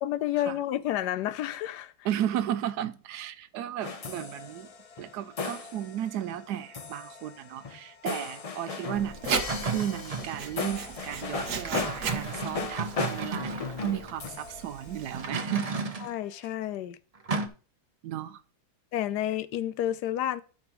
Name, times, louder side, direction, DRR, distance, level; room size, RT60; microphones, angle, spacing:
voice 1, 0.0-1.9 16.0-17.0 18.9-20.4, left 12 dB, 85° left, 1.2 m, -30 dB
voice 2, 2.0-4.7 5.0-15.7 18.0-18.4, right 11 dB, 85° right, 1.2 m, -34 dB
sound 1, 3.8-15.6, left 4 dB, 65° left, 0.3 m, -37 dB
Writing, 8.9-15.3, right 6 dB, 70° right, 1.4 m, -37 dB
sound 2, 9.3-10.4 11.4-14.1 15.1-16.2 17.3-17.5, right 4 dB, 35° right, 0.7 m, -34 dB
12.5 x 6.0 x 3.0 m
omnidirectional pair, 1.7 m